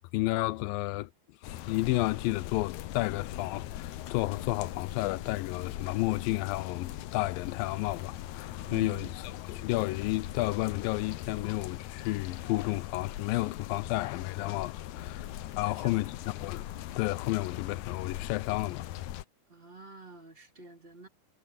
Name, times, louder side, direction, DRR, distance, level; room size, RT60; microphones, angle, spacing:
voice 1, 0.1-1.1 1.5-9.1 9.5-16.1 16.4-16.6 16.9-18.9, left 20 dB, 90° left, 2.3 m, -31 dB
sound 1, 1.4-19.2, left 13 dB, 70° left, 1.8 m, -40 dB
voice 2, 8.7-9.2 15.7-16.1 19.5-21.1, right 4 dB, 15° right, 3.2 m, -47 dB
omnidirectional pair, 4.0 m